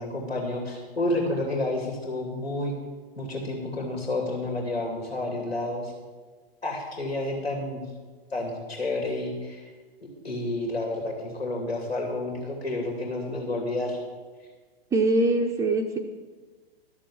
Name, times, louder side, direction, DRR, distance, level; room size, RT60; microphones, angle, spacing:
voice 1, 0.0-2.7 3.2-5.9 6.6-7.8 8.3-9.7 10.2-14.0, left 2 dB, 80° left, 0 dB, 2.8 m, -30 dB
voice 2, 14.9-16.0, right 2 dB, 10° right, 3 dB, 0.5 m, -23 dB
13.5 x 6.8 x 7.3 m, 1.4 s
figure-of-eight pair, 110°, 31 cm